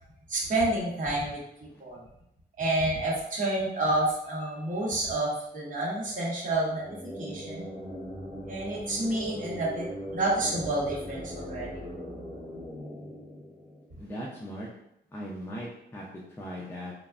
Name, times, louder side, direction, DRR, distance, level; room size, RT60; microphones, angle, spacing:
voice 1, 0.3-1.4 1.8-2.0 2.6-6.8 7.2-7.7 8.5-9.9 10.1-11.8, right 2 dB, 50° right, -5 dB, 0.8 m, -29 dB
sound 1, 6.6-14.2, equal, 30° left, 1.3 m, -40 dB
voice 2, 14.0-14.7 15.1-16.1 16.4-16.9, equal, 15° left, -4 dB, 0.4 m, -38 dB
3.3 x 2.0 x 2.3 m, 0.79 s
wide cardioid pair, 140°, 18 cm